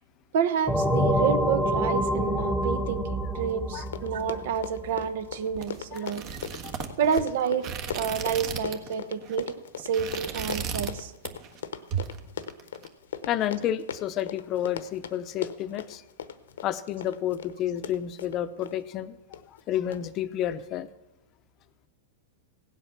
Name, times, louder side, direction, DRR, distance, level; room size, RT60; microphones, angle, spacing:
voice 1, 0.3-6.4 7.0-7.7 7.9-11.1, right 7 dB, 65° right, 1.1 m, -29 dB
sound 1, 0.7-5.1, equal, ahead, 1.3 m, -27 dB
Run, 3.5-3.6 3.8-18.8 19.3-19.6 19.9-20.0, left 8 dB, 80° left, 0.9 m, -38 dB
sound 2, 5.5-8.9 9.2-9.4 9.8-11.0 11.2-11.6 11.9-12.9, right 7 dB, 40° right, 1.4 m, -35 dB
voice 2, 13.3-16.0 16.6-19.2 19.5-20.9, left 11 dB, 40° left, 0.7 m, -30 dB
16.5 x 8.0 x 6.0 m
hypercardioid pair, 120°, 0 cm